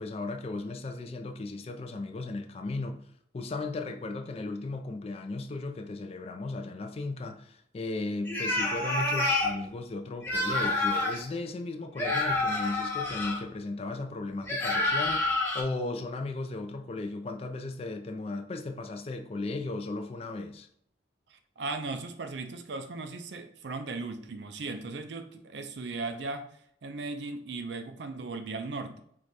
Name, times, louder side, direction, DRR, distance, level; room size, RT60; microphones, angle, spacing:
voice 1, 0.0-3.1 3.3-20.7, left 2 dB, 30° left, 0.3 m, -36 dB
sound 1, 8.2-9.5 10.2-11.2 12.0-13.4 14.5-15.6, left 2 dB, 10° left, 0.8 m, -28 dB
voice 2, 21.3-26.5 26.8-29.0, right 3 dB, 65° right, 0.5 m, -37 dB
4.6 x 2.2 x 4.0 m
head